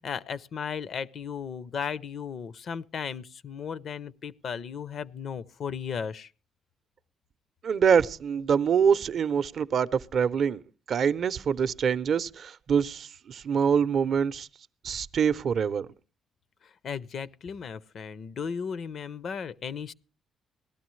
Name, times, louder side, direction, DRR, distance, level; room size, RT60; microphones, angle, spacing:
voice 1, 0.0-6.3 16.6-19.9, left 7 dB, 60° left, 0.5 m, -35 dB
voice 2, 7.6-10.6 10.9-14.5 14.8-15.9, right 7 dB, 60° right, 0.5 m, -25 dB
18.0 x 12.5 x 3.1 m
cardioid pair, 90°, 0 cm